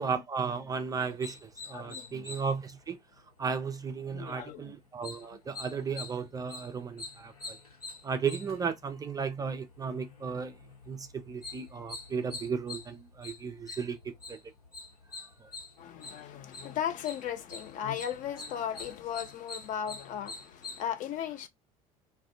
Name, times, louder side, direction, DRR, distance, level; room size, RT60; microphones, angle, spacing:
voice 1, 0.0-3.0 3.4-7.6 8.0-10.5 10.9-14.4 15.4-15.5, right 5 dB, 20° right, 0.3 m, -35 dB
sound 1, 1.0-20.8, left 3 dB, 85° left, 1.0 m, -46 dB
voice 2, 1.7-2.3 4.1-4.7 5.2-5.4 15.8-21.5, left 9 dB, 40° left, 0.5 m, -37 dB
2.4 x 2.2 x 2.5 m
figure-of-eight pair, 65°, 19 cm